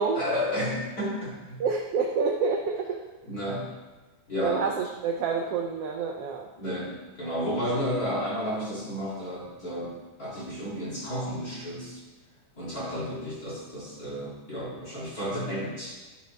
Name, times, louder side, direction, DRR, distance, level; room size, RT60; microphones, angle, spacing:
voice 1, 0.1-1.6 3.2-3.7 4.3-4.6 6.6-9.9 10.2-12.0 12.6-16.0, equal, 30° left, -7 dB, 2.8 m, -32 dB
voice 2, 1.6-3.0 4.4-6.5, right 5 dB, 75° right, 1 dB, 1.4 m, -28 dB
12.5 x 6.6 x 3.4 m, 1.2 s
omnidirectional pair, 3.4 m